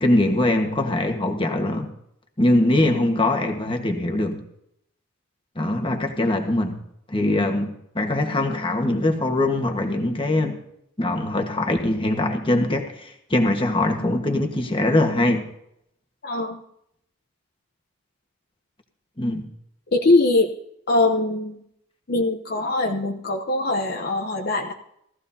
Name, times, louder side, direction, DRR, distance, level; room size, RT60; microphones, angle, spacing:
voice 1, 0.0-1.9 2.4-4.4 5.5-6.8 7.1-10.6 11.0-15.4 19.2-19.5, left 1 dB, 25° left, 4 dB, 1.4 m, -22 dB
voice 2, 16.2-16.6 19.9-20.5 20.9-21.6 22.1-24.7, left 2 dB, 45° left, 3 dB, 0.8 m, -22 dB
17.5 x 14.0 x 2.8 m, 0.75 s
head